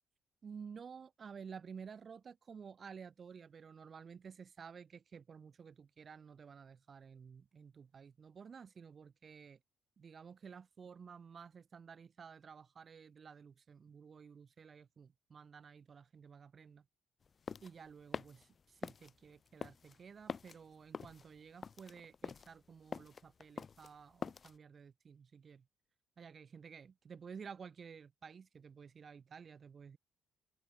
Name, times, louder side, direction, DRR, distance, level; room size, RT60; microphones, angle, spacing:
voice 1, 0.4-9.6 10.0-16.8 17.6-25.6 26.2-30.0, right 6 dB, 45° right, 1.5 m, -53 dB
sound 1, 17.2-24.6, left 6 dB, 40° left, 0.6 m, -46 dB
cardioid pair, 90°, 0 cm